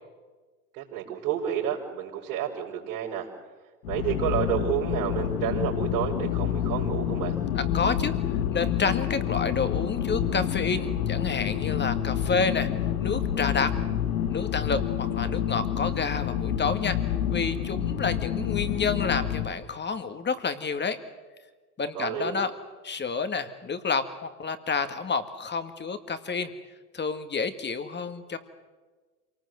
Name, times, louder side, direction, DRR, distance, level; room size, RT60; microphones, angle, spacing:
voice 1, 0.7-3.3 3.9-7.4 21.9-22.3, right 10 dB, 70° right, -3 dB, 5.3 m, -30 dB
sound 1, 3.8-19.5, left 10 dB, 75° left, 1.6 m, -28 dB
voice 2, 7.5-8.1 8.5-12.7 13.0-13.7 14.3-17.0 17.3-21.0 21.8-22.5 22.8-26.5 26.9-28.4, left 5 dB, 25° left, 9 dB, 2.0 m, -29 dB
27.0 x 19.0 x 7.9 m, 1.4 s
hypercardioid pair, 80°, 45 cm